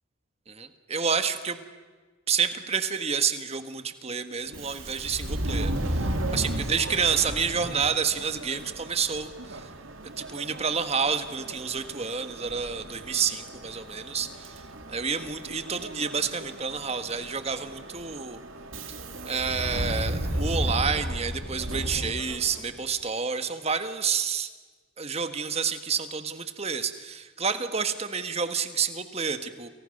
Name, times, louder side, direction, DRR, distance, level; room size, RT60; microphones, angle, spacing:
voice 1, 0.5-1.6 2.3-9.7 10.2-14.6 14.9-18.4 19.2-24.5 25.0-29.7, right 6 dB, 30° right, 9 dB, 1.7 m, -29 dB
Subway metro underground, 4.5-22.8, right 1 dB, 85° right, 2.9 m, -34 dB
30.0 x 28.5 x 6.7 m, 1.4 s
head